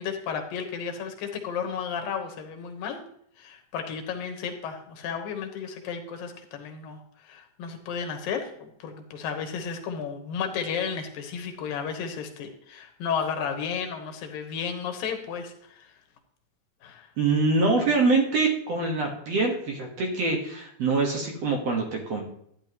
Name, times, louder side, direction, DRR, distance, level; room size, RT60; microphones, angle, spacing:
voice 1, 0.0-3.0 3.4-15.9 16.8-17.1, left 6 dB, 80° left, 5 dB, 2.9 m, -33 dB
voice 2, 17.2-22.2, right 3 dB, 55° right, 1 dB, 2.2 m, -24 dB
12.0 x 10.0 x 3.0 m, 0.70 s
omnidirectional pair, 4.0 m